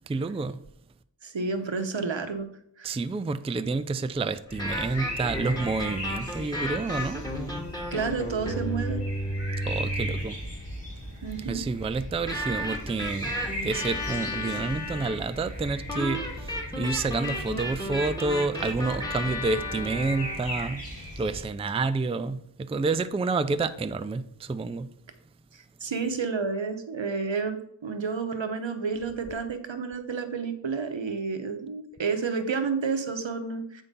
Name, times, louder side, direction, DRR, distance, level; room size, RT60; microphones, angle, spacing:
voice 1, 0.1-0.6 2.8-7.3 9.6-10.4 11.4-13.4 13.6-24.9, right 3 dB, 15° right, 0.3 m, -29 dB
voice 2, 1.2-2.5 2.8-2.9 7.9-9.0 11.2-11.6 25.5-33.8, right 5 dB, 80° right, 0.9 m, -30 dB
sound 1, 4.5-21.4, equal, 30° left, 3.3 m, -38 dB
sound 2, 4.5-10.3 12.3-15.2 15.9-20.4, left 1 dB, 10° left, 1.8 m, -33 dB
8.2 x 3.8 x 5.3 m
wide cardioid pair, 45°, 45 cm